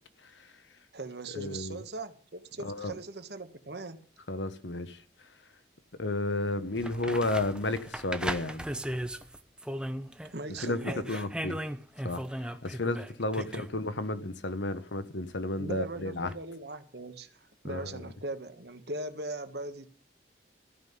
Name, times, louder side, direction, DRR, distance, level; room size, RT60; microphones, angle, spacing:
voice 1, 0.2-0.5 1.3-1.8 2.6-2.9 4.3-5.0 6.0-8.6 10.6-11.6 12.0-16.3 17.6-18.0, left 2 dB, 85° left, 1.2 m, -32 dB
voice 2, 0.9-4.0 10.3-11.3 13.4-13.5 15.6-17.3 17.6-19.9, right 2 dB, 65° right, 1.4 m, -39 dB
sound 1, 6.3-6.4 6.8-10.3 10.6-13.7 16.3-16.4, right 1 dB, 5° right, 0.7 m, -37 dB
14.5 x 5.6 x 9.5 m
head